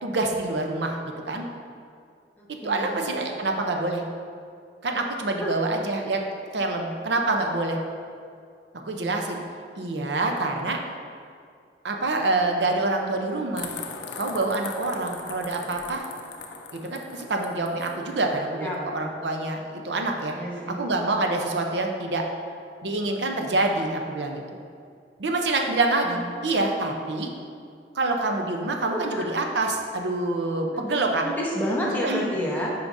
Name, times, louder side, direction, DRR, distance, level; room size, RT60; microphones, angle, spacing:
voice 1, 0.0-1.4 2.5-4.0 4.8-6.2 6.5-7.8 8.8-9.4 9.8-10.8 11.8-13.7 14.2-16.0 16.7-20.3 20.8-22.2 22.8-24.6 25.2-27.3 27.9-31.2 32.0-32.3, right 2 dB, 70° right, 3 dB, 0.6 m, -26 dB
voice 2, 2.4-3.0 5.3-5.8 18.6-18.8 20.3-20.8 26.0-26.3 28.8-29.3 30.7-32.7, equal, 10° left, -4 dB, 0.9 m, -30 dB
sound 1, 13.6-18.0, left 5 dB, 80° left, 0.5 m, -39 dB
8.0 x 5.0 x 2.6 m, 2.2 s
head